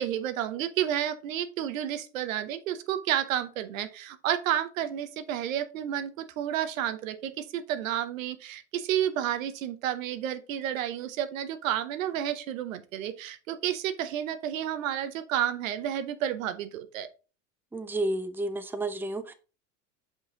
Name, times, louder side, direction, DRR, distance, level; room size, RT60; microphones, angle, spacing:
voice 1, 0.0-17.1, right 11 dB, 90° right, 11 dB, 0.9 m, -31 dB
voice 2, 17.7-19.3, right 2 dB, 5° right, 9 dB, 0.6 m, -31 dB
5.5 x 5.5 x 3.7 m, 0.34 s
supercardioid pair, 105°, 39 cm